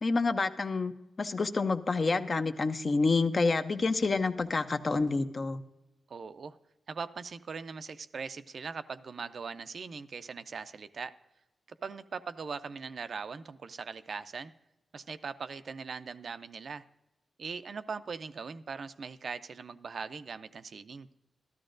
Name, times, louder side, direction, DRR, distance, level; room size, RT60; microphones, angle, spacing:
voice 1, 0.0-0.9 1.2-5.6, left 3 dB, 40° left, 9 dB, 0.6 m, -28 dB
voice 2, 6.1-6.6 6.9-11.1 11.7-14.5 14.9-16.8 17.4-21.1, right 5 dB, 60° right, 12 dB, 0.4 m, -40 dB
13.0 x 13.0 x 2.5 m, 0.97 s
wide cardioid pair, 100°, 0 cm